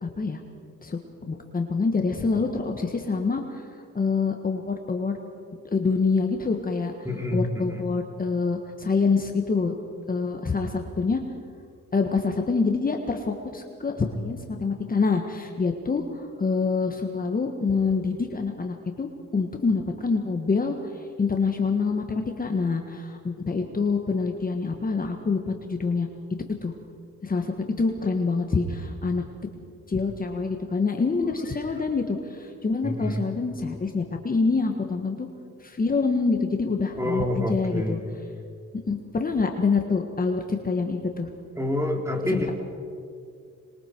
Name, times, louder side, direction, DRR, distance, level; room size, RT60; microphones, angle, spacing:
voice 1, 0.0-0.4 0.8-3.7 3.9-5.2 5.7-6.9 7.3-9.8 10.1-11.2 11.9-26.1 26.6-26.7 27.2-29.2 29.9-35.3 35.6-38.0 38.9-41.3, left 4 dB, 30° left, 3 dB, 1.6 m, -26 dB
voice 2, 7.0-7.8 32.8-33.2 36.9-38.1 41.6-42.5, left 1 dB, 10° right, 2 dB, 3.3 m, -27 dB
26.0 x 22.5 x 4.7 m, 2.4 s
cardioid pair, 90°, 30 cm